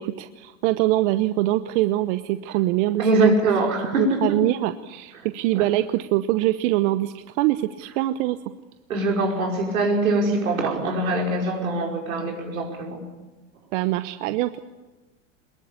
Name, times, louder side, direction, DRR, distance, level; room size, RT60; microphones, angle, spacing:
voice 1, 0.0-3.3 3.9-8.4 13.7-14.6, right 16 dB, 60° right, 11 dB, 1.1 m, -23 dB
voice 2, 3.0-4.4 5.6-5.7 8.9-13.0, right 2 dB, 90° right, 0 dB, 5.7 m, -23 dB
22.5 x 21.5 x 8.7 m, 1.1 s
hypercardioid pair, 100°, 40 cm